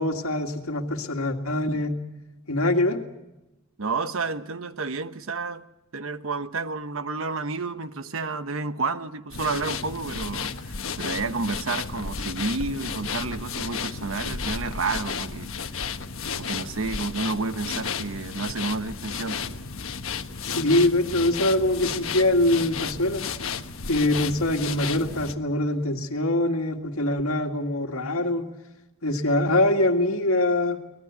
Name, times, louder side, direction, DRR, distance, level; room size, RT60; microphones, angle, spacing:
voice 1, 0.0-2.0 2.5-3.0 20.4-23.2 23.9-28.5 29.0-30.8, left 1 dB, 85° left, 2.0 m, -23 dB
voice 2, 3.8-5.6 5.9-15.5 16.3-19.6, right 3 dB, 70° right, 1.1 m, -30 dB
sound 1, 9.3-25.3, left 6 dB, 70° left, 1.3 m, -33 dB
24.0 x 19.5 x 8.2 m
head